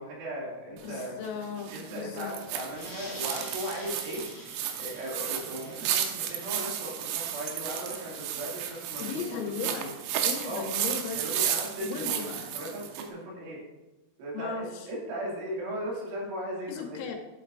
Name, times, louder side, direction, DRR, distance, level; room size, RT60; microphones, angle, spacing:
voice 1, 0.0-1.1 1.7-4.2 4.8-9.9 10.4-10.7 11.1-12.3 12.5-13.6 14.2-17.1, equal, 70° right, -4 dB, 4.6 m, -37 dB
voice 2, 0.7-2.3 9.0-9.8 10.2-11.2 11.8-12.5 14.3-14.9 16.6-17.2, left 6 dB, 85° left, 3 dB, 3.5 m, -37 dB
sound 1, 0.8-13.1, right 10 dB, 90° right, 3.4 m, -33 dB
sound 2, 2.5-9.9, left 1 dB, 20° left, 0.5 m, -49 dB
11.5 x 7.8 x 2.5 m, 1.1 s
omnidirectional pair, 5.8 m